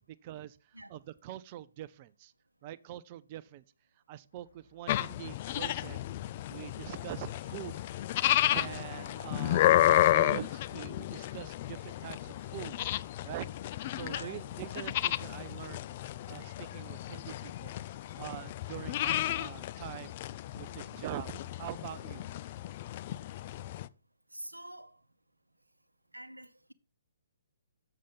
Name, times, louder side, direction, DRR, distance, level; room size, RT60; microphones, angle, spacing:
voice 1, 0.0-2.3 2.6-3.6 4.1-6.0 6.5-7.9 8.5-9.7 10.1-12.8 13.2-13.5 13.9-15.8 16.3-17.7 18.2-20.2 20.5-22.2, right 13 dB, 30° right, 0.5 m, -44 dB
sound 1, 4.3-13.8, left 4 dB, 60° left, 1.9 m, -58 dB
sound 2, 4.9-23.9, left 14 dB, 35° left, 0.4 m, -32 dB
voice 2, 14.1-14.4 24.3-25.0 26.1-26.7, right 1 dB, 80° right, 0.7 m, -47 dB
7.5 x 6.8 x 5.3 m
figure-of-eight pair, 130°, 0 cm